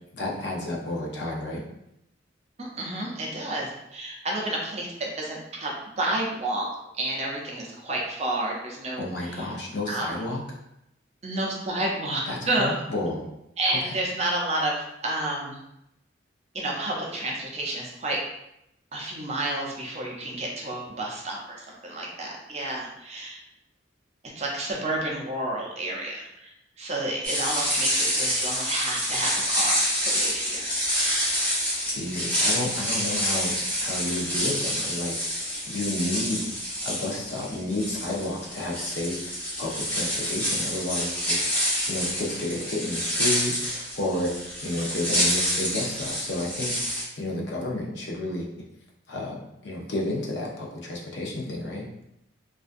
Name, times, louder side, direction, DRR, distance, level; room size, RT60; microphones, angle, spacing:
voice 1, 0.1-1.6 9.0-10.4 12.3-13.3 13.6-13.9 31.9-36.5 36.8-44.3 44.6-48.5 49.1-49.3 49.6-51.9, left 1 dB, 65° left, -2 dB, 0.5 m, -31 dB
voice 2, 2.6-6.7 7.0-9.5 9.9-10.1 11.2-12.7 13.6-15.6 16.5-18.2 18.9-23.4 24.4-26.5 26.8-30.7, right 1 dB, 35° right, -2 dB, 0.4 m, -30 dB
sound 1, 27.2-47.0, equal, 10° left, 0.6 m, -27 dB
2.4 x 2.2 x 2.5 m, 0.83 s
head